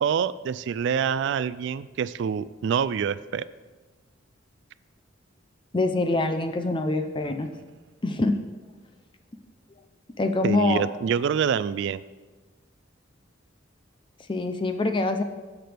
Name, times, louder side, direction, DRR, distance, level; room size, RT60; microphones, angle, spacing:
voice 1, 0.0-3.4 10.4-12.0, right 7 dB, 65° right, 16 dB, 0.3 m, -26 dB
voice 2, 5.7-7.5 8.0-8.3 10.2-10.8 14.3-15.2, left 2 dB, 25° left, 7 dB, 0.5 m, -24 dB
16.0 x 6.0 x 3.4 m, 1.3 s
head